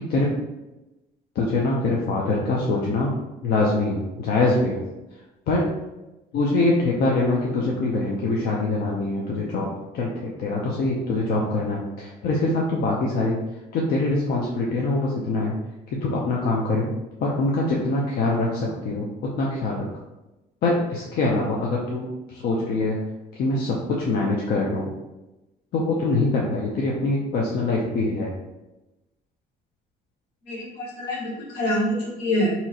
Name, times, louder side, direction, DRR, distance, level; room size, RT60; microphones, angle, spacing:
voice 1, 1.4-3.1 3.4-4.8 5.5-5.7 6.3-13.4 13.7-15.5 16.0-16.9 17.2-19.9 20.6-23.0 23.3-24.9 25.7-28.3, left 2 dB, 70° left, -3 dB, 0.6 m, -24 dB
voice 2, 30.5-32.5, equal, 85° left, -4 dB, 1.2 m, -26 dB
2.8 x 2.4 x 4.2 m, 1.0 s
cardioid pair, 110°, 17 cm